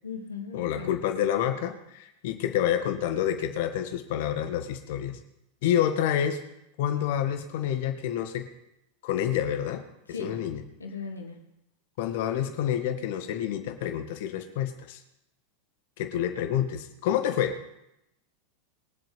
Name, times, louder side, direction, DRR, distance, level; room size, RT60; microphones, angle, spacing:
voice 1, 0.0-0.9 10.1-10.4 10.8-11.4, left 5 dB, 90° left, 3 dB, 2.5 m, -37 dB
voice 2, 0.5-5.2 5.6-6.4 6.8-8.5 9.0-9.8 10.2-10.6 12.0-15.0 16.0-17.6, left 10 dB, 60° left, 7 dB, 1.8 m, -28 dB
22.0 x 7.7 x 5.4 m, 0.84 s
hypercardioid pair, 90°, 0 cm